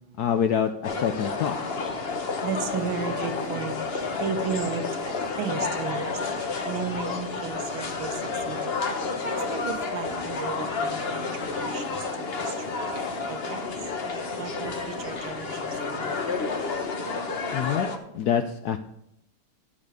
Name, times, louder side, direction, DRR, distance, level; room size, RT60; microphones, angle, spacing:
voice 1, 0.2-1.6 17.5-17.9 18.1-18.8, left 8 dB, 75° left, 8 dB, 0.9 m, -26 dB
sound 1, 0.8-18.0, left 4 dB, 40° left, 1.0 m, -30 dB
voice 2, 2.4-8.2 8.5-9.0 9.3-12.5 13.3-13.7 14.4-16.4, right 6 dB, 85° right, 6 dB, 2.0 m, -35 dB
11.5 x 7.3 x 5.1 m, 0.78 s
omnidirectional pair, 2.2 m